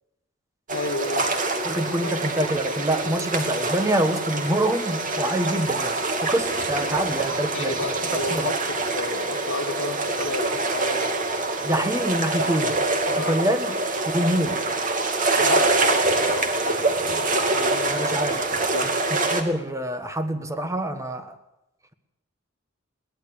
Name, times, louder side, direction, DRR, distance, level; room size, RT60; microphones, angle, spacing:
voice 1, 0.7-1.3 2.0-2.1 7.5-8.6 8.9-11.1 13.1-13.4 15.4-18.0 18.3-19.0, left 3 dB, 85° left, 9 dB, 2.0 m, -32 dB
sound 1, 0.7-19.4, right 2 dB, 45° right, 2.6 m, -25 dB
voice 2, 1.6-8.0 8.3-8.5 11.6-12.8 13.2-13.8 14.1-14.7 17.9-18.4 19.1-21.3, right 1 dB, 15° right, 8 dB, 1.6 m, -26 dB
22.0 x 18.0 x 7.0 m, 0.89 s
head